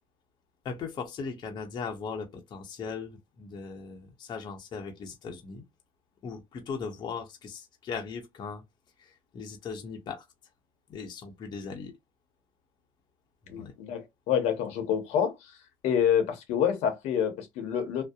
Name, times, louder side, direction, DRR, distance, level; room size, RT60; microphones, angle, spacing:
voice 1, 0.6-5.6 6.2-8.6 9.0-10.3 10.9-11.9 13.4-13.7, left 5 dB, 40° left, 0.7 m, -38 dB
voice 2, 13.5-15.3 15.8-18.0, left 8 dB, 70° left, 0.8 m, -27 dB
2.6 x 2.0 x 2.3 m
cardioid pair, 110°, 12 cm